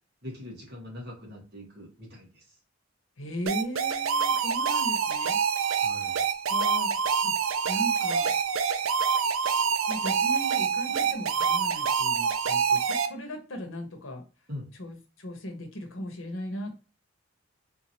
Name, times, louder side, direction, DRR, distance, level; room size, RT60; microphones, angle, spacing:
voice 1, 0.2-2.6 5.6-6.2 14.5-14.7, left 1 dB, 50° right, -2 dB, 1.8 m, -42 dB
voice 2, 3.2-5.4 6.5-8.3 9.4-9.5 9.9-14.2 14.8-16.8, equal, 75° left, 4 dB, 1.0 m, -37 dB
sound 1, 3.5-13.1, right 6 dB, 90° right, 0.4 m, -26 dB
3.6 x 2.7 x 2.9 m, 0.32 s
head